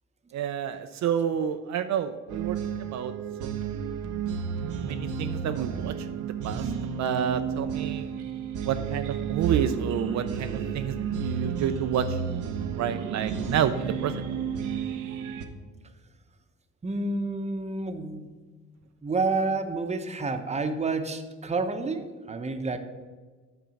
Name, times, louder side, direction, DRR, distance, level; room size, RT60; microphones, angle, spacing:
voice 1, 0.3-3.1 3.4-3.6 4.8-6.6 7.0-8.1 8.6-12.2 12.7-14.2, right 9 dB, 65° right, 9 dB, 0.5 m, -29 dB
sound 1, 2.3-15.5, right 6 dB, 85° right, 0.8 m, -32 dB
voice 2, 16.8-18.3 19.0-22.8, right 3 dB, 20° right, 8 dB, 0.8 m, -29 dB
9.3 x 3.7 x 7.0 m, 1.4 s
cardioid pair, 90°, 30 cm